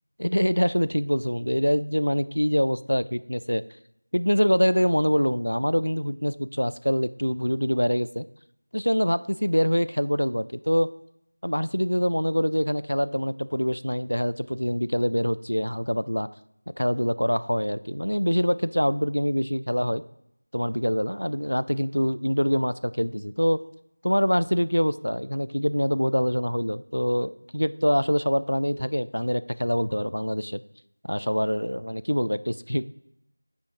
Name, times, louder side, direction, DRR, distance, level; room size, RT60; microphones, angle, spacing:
voice 1, 0.2-3.6 4.1-8.3 8.7-10.9 11.4-16.3 16.8-20.0 20.5-23.6 24.0-30.6 31.1-32.8, equal, 80° left, 15 dB, 0.3 m, -25 dB
5.5 x 4.3 x 4.6 m, 0.77 s
figure-of-eight pair, 175°, 0 cm